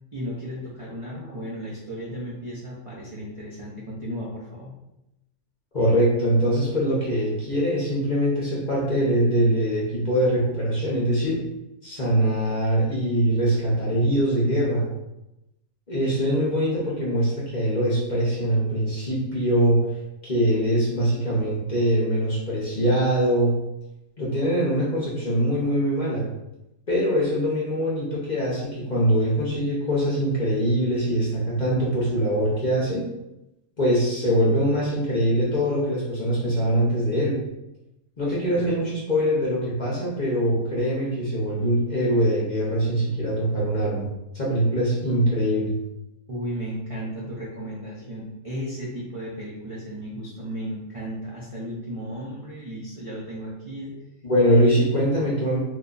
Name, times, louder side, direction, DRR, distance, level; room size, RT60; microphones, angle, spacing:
voice 1, 0.1-4.7 38.5-38.6 46.3-53.9, equal, 55° right, -6 dB, 0.3 m, -34 dB
voice 2, 5.7-11.4 11.8-14.9 15.9-19.8 20.2-23.5 24.2-26.3 26.9-33.1 33.8-37.4 38.2-44.0 44.3-45.7 54.2-55.6, equal, 40° left, -6 dB, 0.7 m, -23 dB
2.8 x 2.2 x 3.8 m, 0.90 s
omnidirectional pair, 1.6 m